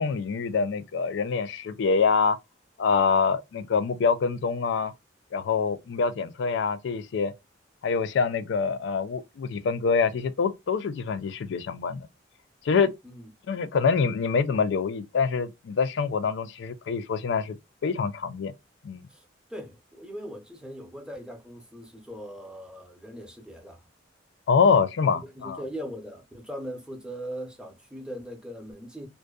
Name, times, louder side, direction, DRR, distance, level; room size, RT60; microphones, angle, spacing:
voice 1, 0.0-2.4 2.8-4.9 5.3-7.3 7.8-12.1 12.7-12.9 13.5-17.6 17.8-18.5 18.8-19.1 24.5-25.6, left 5 dB, 65° left, 0.4 m, -25 dB
voice 2, 19.1-23.8 25.1-29.1, equal, 5° right, 0.6 m, -40 dB
2.5 x 2.2 x 2.2 m
head